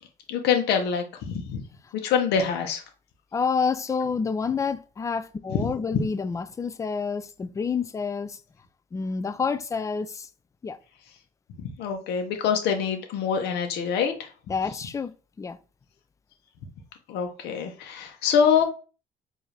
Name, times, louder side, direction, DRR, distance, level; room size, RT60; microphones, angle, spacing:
voice 1, 0.3-1.6 2.0-2.8 5.5-6.0 11.8-14.3 17.1-18.6, left 7 dB, 80° left, 0.9 m, -25 dB
voice 2, 3.3-8.4 8.9-10.3 10.6-10.8 14.5-15.6, left 5 dB, 20° left, 0.4 m, -28 dB
4.6 x 2.7 x 3.3 m
cardioid pair, 110°, 17 cm